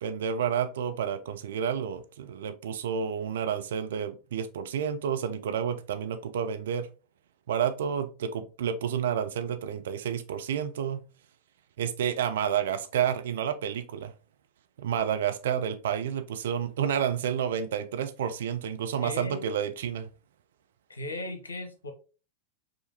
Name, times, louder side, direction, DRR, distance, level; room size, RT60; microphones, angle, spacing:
voice 1, 0.0-6.9 7.5-11.0 11.8-14.1 14.8-20.1, right 8 dB, 60° right, 0.4 m, -30 dB
voice 2, 19.0-19.5 20.9-21.9, left 2 dB, 75° left, 0.8 m, -37 dB
5.0 x 2.5 x 2.7 m
figure-of-eight pair, 90°, 0 cm